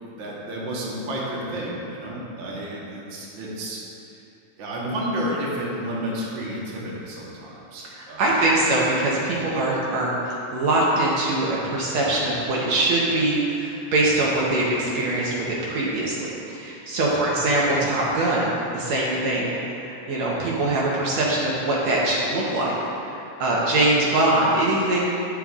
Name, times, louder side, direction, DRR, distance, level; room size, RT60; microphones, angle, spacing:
voice 1, 0.0-3.8 4.1-4.2 4.6-8.5 9.3-9.5 17.0-17.3, equal, 55° right, -5 dB, 1.5 m, -31 dB
voice 2, 8.2-22.7 23.4-25.0, right 2 dB, 70° right, -5 dB, 2.0 m, -22 dB
10.5 x 7.4 x 2.4 m, 2.9 s
omnidirectional pair, 3.5 m